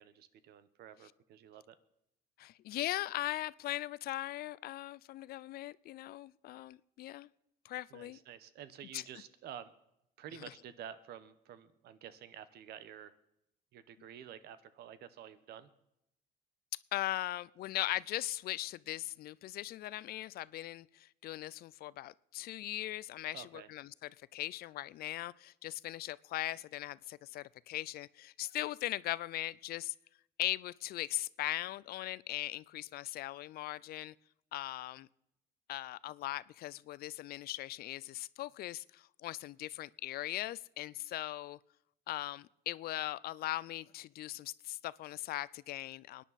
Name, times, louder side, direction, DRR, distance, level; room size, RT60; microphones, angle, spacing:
voice 1, 0.0-1.8 7.9-9.7 10.2-13.1 13.7-15.7 23.3-23.7, right 9 dB, 75° right, 14 dB, 1.0 m, -50 dB
voice 2, 2.4-7.3 7.6-8.2 8.9-9.0 16.9-23.9 24.3-29.9 30.4-34.1 34.5-35.1 35.7-41.6 42.1-46.2, left 15 dB, 65° left, 20 dB, 0.4 m, -39 dB
23.5 x 10.0 x 4.1 m, 0.81 s
cardioid pair, 110°, 17 cm